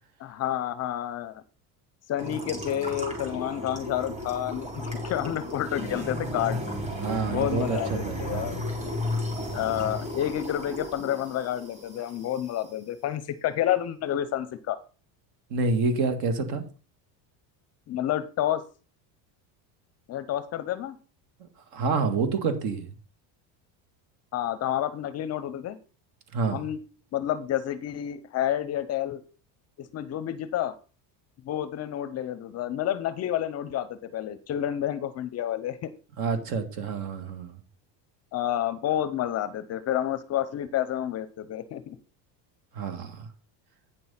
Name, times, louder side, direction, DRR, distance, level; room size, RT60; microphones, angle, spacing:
voice 1, 0.2-1.4 2.1-6.6 7.3-8.6 9.5-14.8 17.9-18.6 20.1-21.0 24.3-25.8 26.5-26.8 27.1-29.2 29.9-30.7 31.4-35.9 38.3-42.0, left 11 dB, 35° left, 14 dB, 0.6 m, -29 dB
sound 1, 2.2-12.6, left 1 dB, 15° right, 3.5 m, -34 dB
voice 2, 7.0-8.6 15.5-16.6 21.7-22.9 26.3-26.6 36.2-37.6 42.7-43.3, right 4 dB, 50° right, 8 dB, 2.0 m, -28 dB
9.2 x 6.1 x 5.6 m, 0.36 s
cardioid pair, 155°, 45 cm